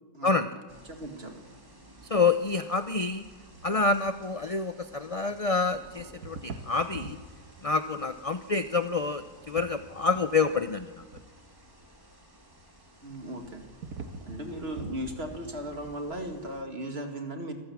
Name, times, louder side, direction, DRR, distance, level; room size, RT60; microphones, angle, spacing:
voice 1, 0.1-1.4 13.0-13.6 14.3-17.5, right 1 dB, 40° right, 4 dB, 2.3 m, -37 dB
sound 1, 0.7-16.6, right 1 dB, 15° right, 2.7 m, -53 dB
voice 2, 2.1-3.2 3.6-7.2 7.6-11.0, left 4 dB, 45° left, 10 dB, 0.4 m, -27 dB
sound 2, 3.5-3.7 4.2-4.5 4.9-5.7 6.2-7.3 8.0-8.1 9.2-9.7 10.0-10.7 11.1-11.2 13.1-15.0, right 4 dB, 65° right, 1.7 m, -43 dB
24.0 x 15.0 x 7.2 m, 1.5 s
omnidirectional pair, 1.6 m